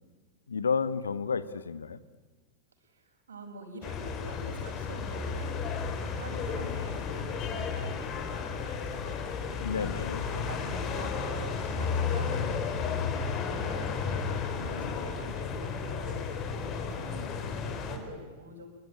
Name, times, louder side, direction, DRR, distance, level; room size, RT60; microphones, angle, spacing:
voice 1, 0.5-2.0 9.6-10.3 14.6-15.0, left 5 dB, 70° left, 15 dB, 1.2 m, -32 dB
voice 2, 2.8-5.6 6.1-9.7 10.3-18.7, right 2 dB, 70° right, 5 dB, 5.5 m, -45 dB
sound 1, 3.8-18.0, left 6 dB, 35° left, 3.7 m, -33 dB
26.0 x 22.5 x 9.8 m, 1.4 s
figure-of-eight pair, 90°, 0 cm